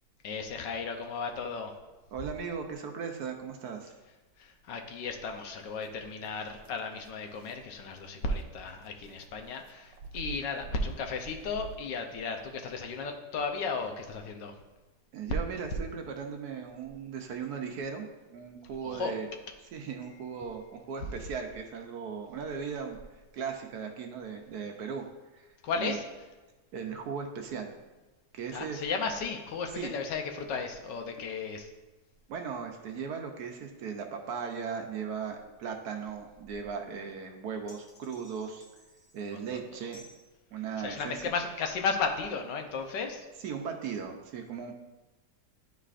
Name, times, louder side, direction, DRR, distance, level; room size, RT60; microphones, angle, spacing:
voice 1, 0.2-1.7 4.4-14.5 18.8-19.1 25.6-26.0 28.5-31.7 39.3-39.6 40.8-43.3, left 4 dB, 80° left, 4 dB, 1.4 m, -34 dB
voice 2, 2.1-3.9 15.1-19.3 19.7-23.0 23.3-25.1 25.3-25.5 25.7-26.0 26.7-27.7 28.3-28.8 29.7-30.0 32.3-38.7 39.1-40.1 40.5-41.3 43.4-44.7, right 6 dB, 70° right, 3 dB, 1.1 m, -37 dB
sound 1, 5.6-11.8, right 4 dB, 85° right, 1.3 m, -48 dB
sound 2, 37.7-39.3 39.9-40.3, left 2 dB, 50° left, 1.2 m, -56 dB
11.5 x 4.0 x 2.5 m, 1.2 s
omnidirectional pair, 1.9 m